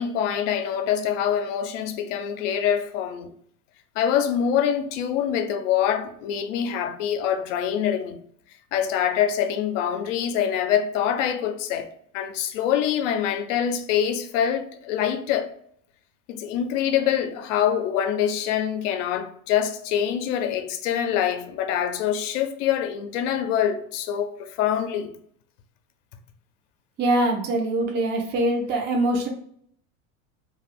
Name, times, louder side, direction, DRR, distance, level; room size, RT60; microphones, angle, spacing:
voice 1, 0.0-3.3 4.0-8.2 8.7-11.9 12.1-15.5 16.3-25.1, left 9 dB, 65° left, 0.6 m, -25 dB
voice 2, 27.0-29.3, right 1 dB, 25° right, 0.6 m, -23 dB
2.4 x 2.4 x 3.5 m
hypercardioid pair, 95°, 41 cm